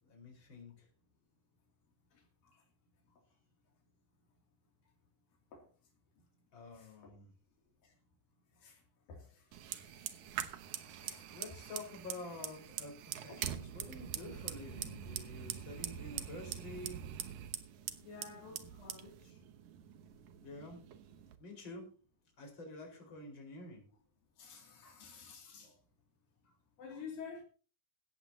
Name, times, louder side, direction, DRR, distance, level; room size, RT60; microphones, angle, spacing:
voice 1, 0.0-0.9 6.5-7.3 11.3-17.0 20.4-20.8 21.4-21.9 22.4-23.8, left 2 dB, 35° left, 5.3 m, -49 dB
voice 2, 9.1-10.4 11.0-11.3 18.0-19.4 24.4-25.8 26.8-27.4, left 5 dB, 80° left, 4.5 m, -51 dB
Fire, 9.5-21.4, right 10 dB, 65° right, 2.1 m, -44 dB
16.5 x 14.0 x 2.9 m
omnidirectional pair, 4.0 m